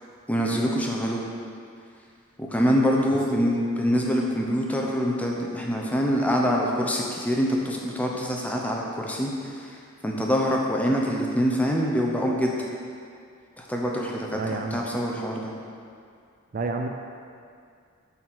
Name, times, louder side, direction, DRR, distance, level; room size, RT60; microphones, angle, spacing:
voice 1, 0.3-1.2 2.4-12.7 13.6-15.5, equal, 5° left, -2 dB, 0.7 m, -25 dB
voice 2, 14.3-14.8 16.5-16.9, right 3 dB, 40° right, 4 dB, 0.4 m, -29 dB
7.5 x 4.2 x 6.0 m, 2.3 s
head